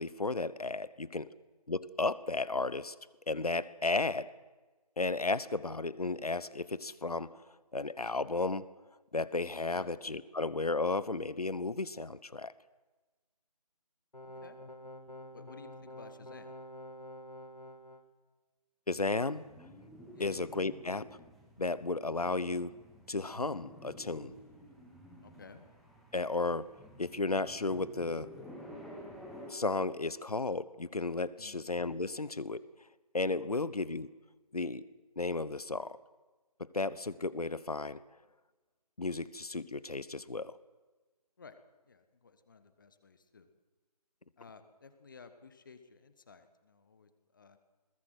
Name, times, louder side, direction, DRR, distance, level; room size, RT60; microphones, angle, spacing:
voice 1, 0.0-1.3 1.7-2.9 3.3-4.3 5.0-7.3 7.7-8.7 9.1-12.5 18.9-19.4 20.2-21.0 21.6-22.7 23.1-24.4 26.1-26.7 27.0-28.3 29.5-32.6 33.1-34.1 34.5-34.8 35.2-36.0 36.6-38.0 39.0-40.5, left 3 dB, 65° left, 18 dB, 1.1 m, -34 dB
sound 1, 14.1-18.0, equal, 80° left, 2.8 m, -48 dB
voice 2, 14.2-14.6 15.3-16.5 20.1-20.3 25.2-25.7 31.4-31.6 33.5-33.7 41.4-41.6 41.8-43.5 44.4-47.6, left 5 dB, 30° left, 10 dB, 1.5 m, -55 dB
sound 2, 19.3-29.5, equal, ahead, 1.0 m, -52 dB
21.0 x 19.5 x 7.9 m, 1.2 s
figure-of-eight pair, 155°, 21 cm